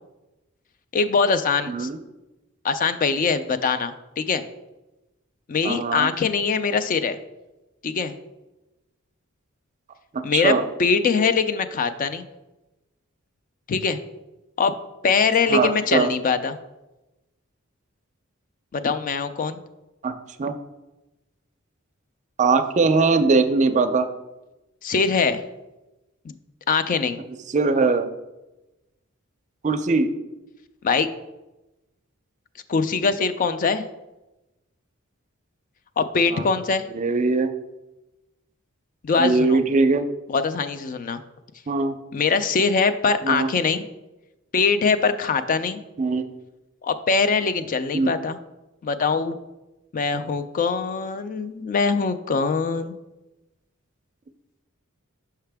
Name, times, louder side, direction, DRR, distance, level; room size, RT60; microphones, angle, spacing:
voice 1, 0.9-1.9 2.6-4.4 5.5-7.2 7.8-8.1 10.2-10.5 10.8-12.2 13.7-14.0 14.6-14.7 15.0-16.6 18.7-19.6 24.8-25.4 26.2-26.3 26.7-27.2 30.8-31.1 32.7-33.8 36.0-36.8 39.0-39.6 40.3-41.2 42.1-43.9 44.5-45.8 46.8-48.4 48.8-49.4 49.9-52.9, left 5 dB, 40° left, 11 dB, 0.4 m, -22 dB
voice 2, 1.7-2.0 5.6-6.1 10.1-10.6 15.5-16.1 20.0-20.1 20.4-20.6 22.4-24.1 27.5-28.1 29.6-30.1 36.3-36.4 36.9-37.5 39.2-40.1 41.7-41.9 43.2-43.5 46.0-46.3 47.9-48.1, right 3 dB, 35° right, 8 dB, 0.4 m, -20 dB
5.7 x 5.6 x 3.4 m, 1.0 s
head